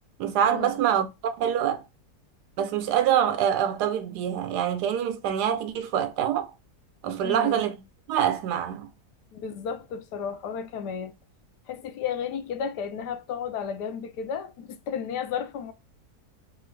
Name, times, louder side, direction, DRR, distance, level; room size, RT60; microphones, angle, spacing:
voice 1, 0.2-1.8 2.6-6.5 7.0-7.8 8.1-8.9, right 9 dB, 85° right, 1.2 m, -25 dB
voice 2, 7.2-7.7 9.3-11.1 11.7-15.7, left 7 dB, 85° left, 1.2 m, -33 dB
3.4 x 2.4 x 3.1 m
omnidirectional pair, 1.7 m